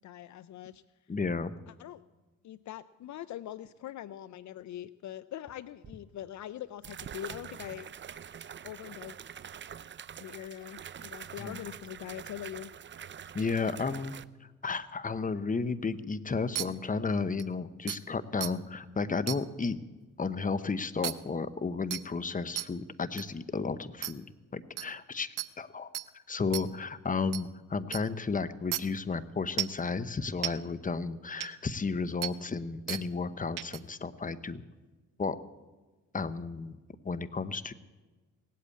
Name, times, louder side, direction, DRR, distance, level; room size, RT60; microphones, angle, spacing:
voice 1, 0.0-0.8 1.7-2.0 2.4-7.9 8.6-9.2 10.2-12.7, left 11 dB, 65° left, 16 dB, 0.5 m, -43 dB
voice 2, 1.1-1.5 11.4-11.6 13.3-14.1 14.6-19.8 20.2-25.9 26.3-34.6 35.2-35.4 36.1-36.8 37.0-37.7, left 4 dB, 25° left, 13 dB, 0.9 m, -33 dB
sound 1, 5.8-5.9 6.8-14.2, right 8 dB, 40° right, 0.5 m, -45 dB
sound 2, 16.6-16.7 17.4-17.5 17.9-18.0 18.4-18.5 19.3-19.4 21.0-21.1 21.9-22.0 22.6-22.7 23.2-23.3 24.0-24.1 24.8-24.9 25.4-25.5 25.9-26.1 26.5-26.6 27.3-27.4 27.9-28.0 28.7-28.8 29.6-29.8 30.4-30.5 31.4-31.5 32.2-32.3 32.9-33.0 33.6-33.8, right 15 dB, 85° right, 0.7 m, -33 dB
18.0 x 8.4 x 8.4 m, 1.2 s
cardioid pair, 65°, 31 cm